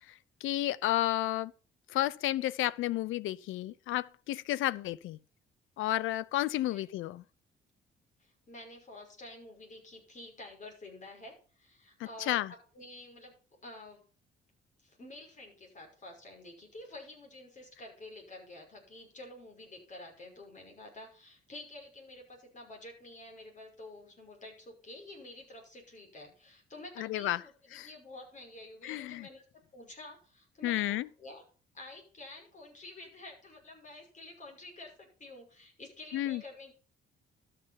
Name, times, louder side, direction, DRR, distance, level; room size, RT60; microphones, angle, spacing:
voice 1, 0.4-1.5 1.9-5.2 5.8-7.2 12.2-12.5 27.0-27.4 27.7-27.9 28.8-29.3 30.6-31.1 36.1-36.4, left 14 dB, 85° left, 0.6 m, -31 dB
voice 2, 8.2-13.4 13.6-14.0 14.8-29.4 29.7-31.4 31.7-36.7, left 2 dB, 40° left, 5.7 m, -49 dB
13.0 x 6.8 x 5.7 m
cardioid pair, 90°, 20 cm